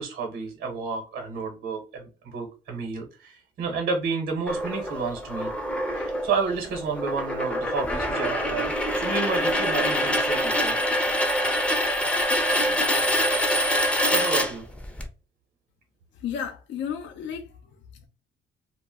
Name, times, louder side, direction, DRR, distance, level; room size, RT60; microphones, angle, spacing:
voice 1, 0.0-5.5 6.0-10.8 14.1-14.7, right 4 dB, 75° right, 0.8 m, -31 dB
sound 1, 4.5-15.0, equal, 5° left, 0.5 m, -25 dB
voice 2, 16.1-18.1, left 8 dB, 70° left, 0.5 m, -34 dB
2.1 x 2.1 x 3.4 m
cardioid pair, 90°, 20 cm